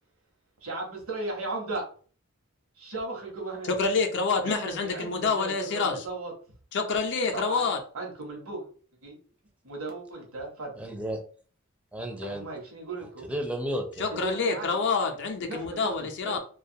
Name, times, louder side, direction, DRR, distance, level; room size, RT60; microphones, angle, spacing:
voice 1, 0.6-1.8 2.8-3.7 4.4-6.3 7.3-7.7 7.9-8.7 9.0-9.2 9.6-10.7 12.2-13.3 14.1-14.8 15.4-16.4, right 2 dB, 75° right, 0 dB, 0.9 m, -36 dB
voice 2, 3.7-6.0 6.7-7.8 14.0-16.4, left 4 dB, 55° left, 5 dB, 0.4 m, -27 dB
voice 3, 10.7-11.2 11.9-12.5 13.2-14.2, equal, 5° right, 3 dB, 0.4 m, -33 dB
2.4 x 2.3 x 2.7 m, 0.42 s
head